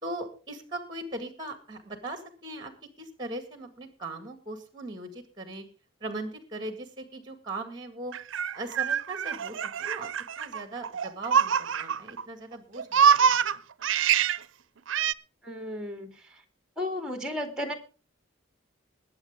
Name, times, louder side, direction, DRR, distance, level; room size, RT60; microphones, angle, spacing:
voice 1, 0.0-2.7 3.0-5.6 6.0-8.1 8.5-10.1 10.4-13.4, right 2 dB, 20° right, 8 dB, 1.9 m, -39 dB
Laughter, 8.1-12.2 12.5-14.4 14.9-15.1, right 7 dB, 70° right, 0.5 m, -25 dB
voice 2, 15.4-16.1 16.8-17.7, left 1 dB, 5° right, 5 dB, 2.5 m, -33 dB
21.0 x 8.8 x 3.7 m, 0.37 s
head